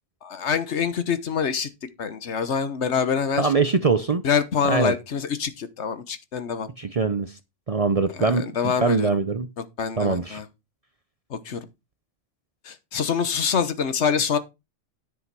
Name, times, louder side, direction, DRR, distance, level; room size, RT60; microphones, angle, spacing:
voice 1, 0.2-1.7 2.0-3.5 4.2-6.7 8.1-9.2 9.6-10.5 11.3-11.6 12.6-14.4, left 6 dB, 65° left, 1.3 m, -25 dB
voice 2, 3.4-4.2 4.7-4.9 6.8-7.4 7.7-9.5 10.0-10.4, right 4 dB, 40° right, 0.6 m, -23 dB
10.0 x 6.2 x 4.7 m
omnidirectional pair, 1.3 m